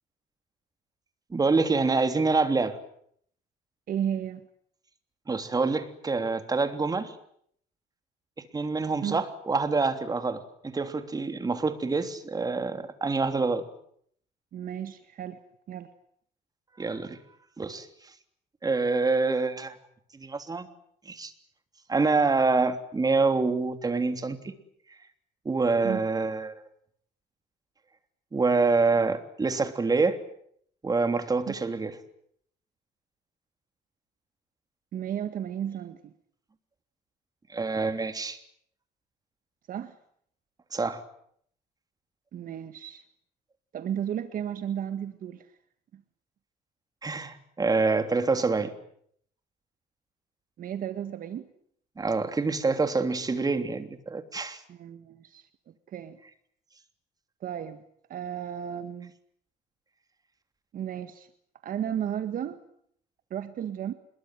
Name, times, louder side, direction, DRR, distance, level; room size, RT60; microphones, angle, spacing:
voice 1, 1.3-2.8 5.3-7.1 8.5-13.6 16.8-17.2 17.6-17.9 18.6-19.8 20.1-20.7 21.0-21.3 21.9-24.5 25.4-26.6 28.3-30.2 30.8-31.9 37.5-38.4 40.7-41.0 47.0-48.7 52.0-54.6, right 3 dB, 20° right, 8 dB, 3.2 m, -26 dB
voice 2, 3.9-4.5 9.0-9.2 14.5-15.4 15.7-15.9 25.8-26.0 31.5-31.6 34.9-36.1 39.7-40.0 42.3-43.0 43.7-45.5 45.9-46.0 50.6-51.5 54.7-56.2 57.4-57.8 58.1-59.1 60.7-61.3 61.6-62.6 63.3-63.9, right 9 dB, 55° right, 10 dB, 1.8 m, -34 dB
26.5 x 22.0 x 9.4 m, 0.68 s
cardioid pair, 110°, 17 cm